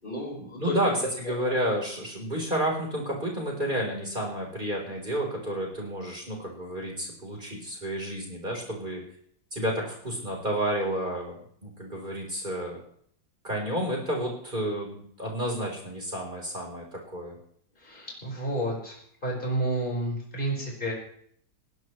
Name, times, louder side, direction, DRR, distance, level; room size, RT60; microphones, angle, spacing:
voice 1, 0.0-1.0 1.2-1.3 17.8-19.0 19.2-20.9, right 1 dB, 25° left, -3 dB, 5.1 m, -31 dB
voice 2, 0.6-9.0 9.5-12.8 13.4-17.4, right 1 dB, 25° right, -1 dB, 4.2 m, -31 dB
19.5 x 18.0 x 3.3 m, 0.63 s
omnidirectional pair, 2.1 m